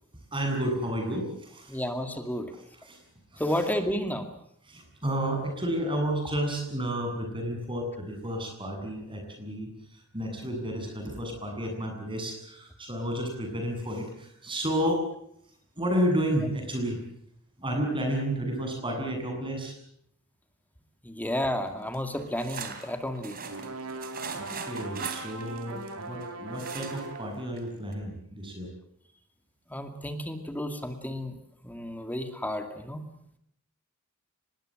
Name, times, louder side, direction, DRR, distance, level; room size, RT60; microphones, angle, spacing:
voice 1, 0.3-1.8 2.8-3.0 3.3-3.6 4.7-15.0 15.8-17.0 17.6-19.7 24.3-28.7, equal, 25° right, 3 dB, 7.8 m, -31 dB
voice 2, 1.7-2.5 3.4-4.3 21.0-23.4 29.7-31.3 31.6-33.0, left 1 dB, 10° left, 6 dB, 2.3 m, -31 dB
sound 1, 21.9-26.2 26.5-27.2 27.6-27.7 27.9-28.0, right 6 dB, 45° right, 3.3 m, -40 dB
sound 2, 23.4-27.4, right 3 dB, 70° right, 2.9 m, -40 dB
24.5 x 20.5 x 7.7 m, 0.69 s
head